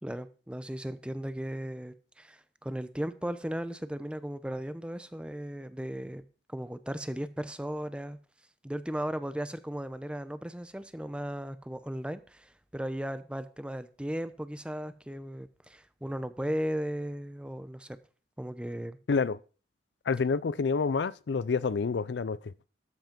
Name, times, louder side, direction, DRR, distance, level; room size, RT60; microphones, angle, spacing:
voice 1, 0.0-6.2 6.5-8.2 8.6-18.0 18.4-19.0, equal, 5° right, 0.6 m, -36 dB
voice 2, 19.1-19.4 20.1-22.5, left 4 dB, 75° left, 0.5 m, -28 dB
13.0 x 5.5 x 5.2 m
head